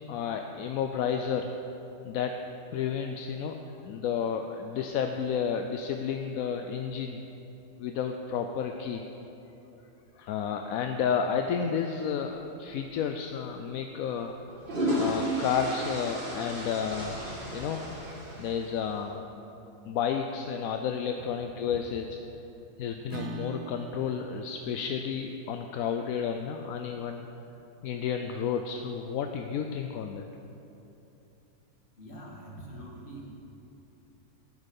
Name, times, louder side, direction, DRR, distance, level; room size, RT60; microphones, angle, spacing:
voice 1, 0.1-1.5 2.0-2.4 2.7-7.2 7.8-9.0 10.2-14.6 15.0-17.2 17.5-17.8 18.4-19.2 19.8-22.2 22.8-27.3 27.8-30.3, left 7 dB, 70° left, 5 dB, 0.9 m, -31 dB
sound 1, 13.0-13.2 14.3-18.9, equal, 35° right, 2.0 m, -33 dB
Acoustic guitar / Strum, 23.1-28.5, right 6 dB, 75° right, 1.2 m, -46 dB
voice 2, 32.0-33.3, right 1 dB, 40° left, -2 dB, 2.1 m, -44 dB
11.5 x 9.9 x 5.4 m, 3.0 s
omnidirectional pair, 1.7 m